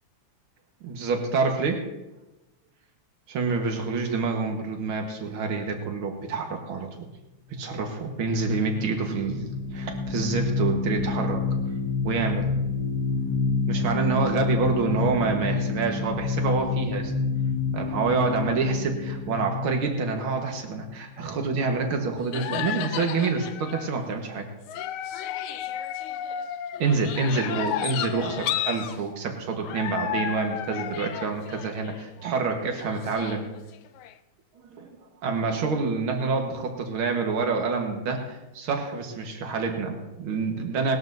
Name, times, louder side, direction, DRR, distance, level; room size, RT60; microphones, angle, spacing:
voice 1, 0.8-1.9 3.3-6.9 7.5-9.5 9.7-11.4 12.0-12.5 13.7-17.1 17.7-24.5 26.8-33.5 34.6-34.9 35.2-41.0, right 4 dB, 70° right, 3 dB, 2.3 m, -27 dB
sound 1, 8.0-21.2, left 4 dB, 50° right, 2.7 m, -28 dB
sound 2, 21.6-21.7 22.3-24.0 24.7-29.0 29.6-32.5 32.8-34.1, left 10 dB, 80° left, 1.5 m, -33 dB
19.0 x 12.5 x 2.7 m, 1.0 s
omnidirectional pair, 2.4 m